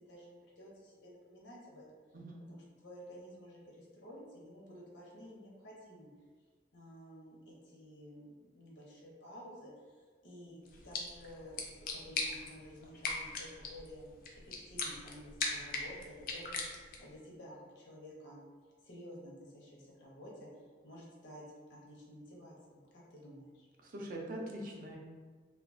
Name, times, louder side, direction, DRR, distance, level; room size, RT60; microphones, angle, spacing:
voice 1, 0.1-1.9 2.4-6.1 6.7-14.1 14.4-18.4 18.8-20.5 20.8-21.4 21.7-23.7, equal, 90° left, -4 dB, 0.7 m, -52 dB
sound 1, 10.6-17.1, left 3 dB, 50° left, 0.3 m, -41 dB
voice 2, 23.8-25.0, right 1 dB, 50° right, -1 dB, 0.4 m, -42 dB
2.2 x 2.2 x 2.5 m, 1.5 s
head